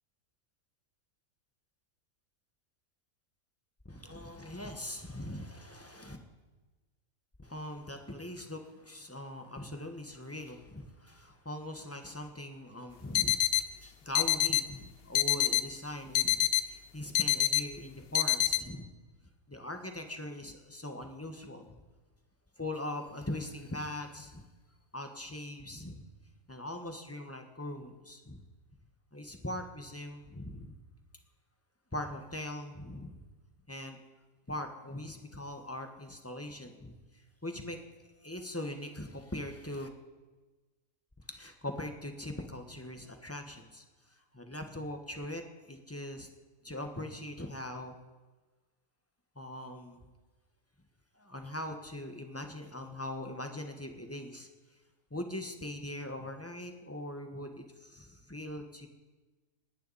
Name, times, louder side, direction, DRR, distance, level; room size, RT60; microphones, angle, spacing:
voice 1, 3.8-6.2 7.4-13.5 13.8-18.9 19.5-21.8 22.6-24.5 24.9-26.0 26.5-28.4 29.1-30.8 31.9-33.2 33.7-34.0 34.5-37.8 38.2-39.9 41.3-46.3 46.6-48.0 49.3-50.1 51.1-54.8 55.1-58.9, left 1 dB, 10° left, 5 dB, 1.2 m, -41 dB
sound 1, 13.1-13.6 14.1-14.7 15.1-15.7 16.1-16.7 17.1-17.7 18.1-18.6, left 11 dB, 60° left, 0.7 m, -27 dB
28.0 x 10.5 x 4.2 m, 1.2 s
omnidirectional pair, 1.4 m